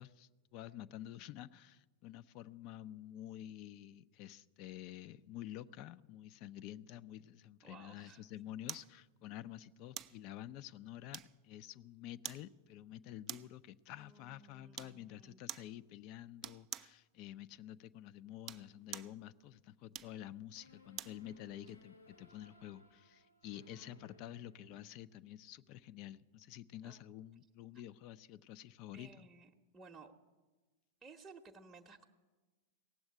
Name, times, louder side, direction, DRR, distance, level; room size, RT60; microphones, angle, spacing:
voice 1, 0.0-29.3, left 12 dB, 40° left, 15 dB, 0.4 m, -50 dB
voice 2, 7.6-8.2 14.0-15.4 23.5-24.3 26.8-27.0 28.9-30.1 31.0-32.1, right 3 dB, 15° right, 0 dB, 0.8 m, -58 dB
sound 1, 8.7-8.9 10.0-10.2 11.1-11.6 12.2-12.5 13.3-13.6 14.7-15.0 15.5-15.7 16.4-17.0 18.3-19.2 19.9-21.2 21.7-21.8, right 11 dB, 35° right, 0.4 m, -46 dB
sound 2, 20.5-25.2, equal, 85° left, 1.9 m, -63 dB
17.0 x 7.8 x 9.3 m, 1.3 s
figure-of-eight pair, 90°, 0 cm